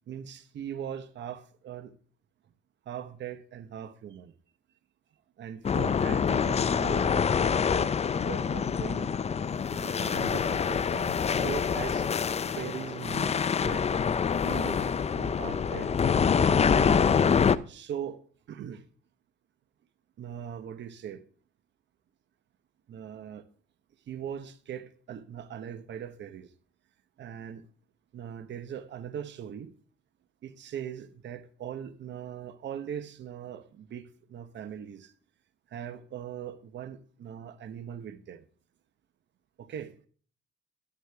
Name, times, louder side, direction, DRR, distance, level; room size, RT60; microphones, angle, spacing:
voice 1, 0.1-1.9 2.9-4.3 5.4-9.1 9.7-12.1 12.6-13.9 14.4-16.9 17.7-18.2 18.5-18.8 20.2-21.2 22.9-23.4 24.1-26.5 27.2-27.6 28.1-29.7 30.4-35.1 35.7-38.4 39.6-39.9, right 9 dB, 65° right, 1.0 m, -40 dB
sound 1, 5.6-17.6, left 6 dB, 30° left, 0.5 m, -26 dB
11.0 x 9.7 x 3.5 m
cardioid pair, 90°, 20 cm